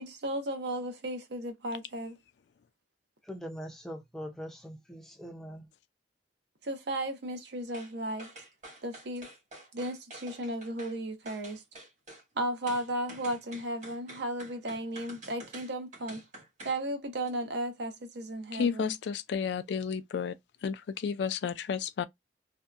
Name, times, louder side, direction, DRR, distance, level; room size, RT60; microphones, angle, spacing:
voice 1, 0.0-2.2 6.6-8.3 8.8-9.3 9.7-11.6 12.3-16.2 16.6-18.9, right 1 dB, 60° right, 0.7 m, -35 dB
voice 2, 3.3-5.7, equal, ahead, 0.5 m, -42 dB
sound 1, 7.7-7.9 8.2-11.0 11.3-12.2 12.7-16.8 17.2-17.3, right 1 dB, 40° right, 1.4 m, -48 dB
voice 3, 18.5-20.4 20.6-22.0, left 6 dB, 65° left, 0.3 m, -32 dB
2.6 x 2.2 x 2.4 m
head